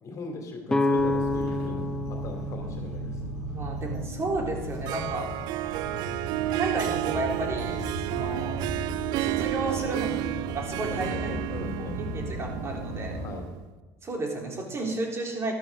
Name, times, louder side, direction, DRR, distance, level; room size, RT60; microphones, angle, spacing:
voice 1, 0.0-3.2 10.1-10.5 10.9-12.0 13.1-13.5, left 3 dB, 40° left, 2 dB, 2.8 m, -40 dB
sound 1, 0.7-4.5, left 2 dB, 10° left, 1.0 m, -29 dB
sound 2, 0.9-13.3, right 1 dB, 85° right, 3.9 m, -36 dB
voice 2, 3.5-5.3 6.5-8.6 9.2-10.1 10.5-13.2 14.0-15.5, right 2 dB, 35° right, 0 dB, 3.8 m, -32 dB
Harp, 4.6-13.6, right 18 dB, 60° right, 0.4 m, -32 dB
13.5 x 12.0 x 3.9 m, 1.3 s
hypercardioid pair, 75°, 8 cm